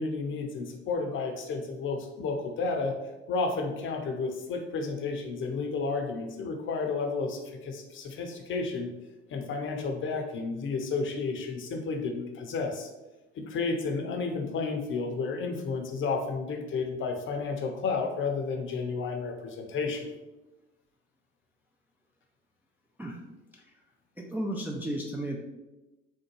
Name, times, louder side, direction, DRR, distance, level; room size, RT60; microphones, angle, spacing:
voice 1, 0.0-2.9 3.3-8.9 9.3-12.9 13.4-20.1, left 4 dB, 40° left, 4 dB, 0.6 m, -32 dB
voice 2, 24.2-25.4, right 1 dB, 5° right, -1 dB, 0.3 m, -33 dB
3.5 x 2.1 x 3.0 m, 1.0 s
hypercardioid pair, 60°, 31 cm